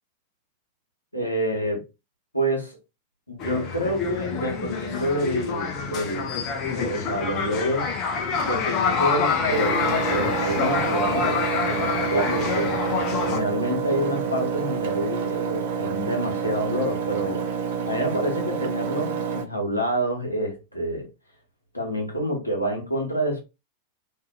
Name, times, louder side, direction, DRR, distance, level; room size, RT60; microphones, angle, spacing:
voice 1, 1.1-1.8 2.3-2.8 3.3-7.9 8.4-12.8 13.3-17.5 17.8-21.1 21.7-23.4, equal, 85° left, 0.9 m, -28 dB
sound 1, 3.4-13.4, left 5 dB, 35° left, 0.5 m, -26 dB
Engine, 9.5-19.4, right 6 dB, 55° right, 0.5 m, -28 dB
2.6 x 2.5 x 2.3 m
figure-of-eight pair, 90°, 0 cm